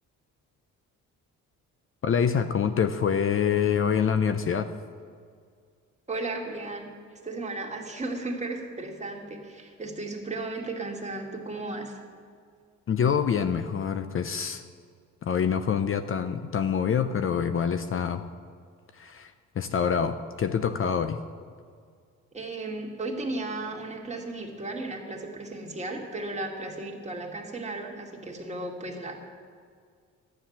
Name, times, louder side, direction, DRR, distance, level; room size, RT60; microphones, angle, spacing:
voice 1, 2.0-4.7 12.9-14.6 15.2-18.2 18.9-21.2, left 7 dB, 45° left, 10 dB, 0.7 m, -26 dB
voice 2, 6.1-6.9 7.2-12.0 22.3-29.2, right 2 dB, 20° right, 0 dB, 2.3 m, -35 dB
12.0 x 9.7 x 7.3 m, 2.1 s
cardioid pair, 90°, 30 cm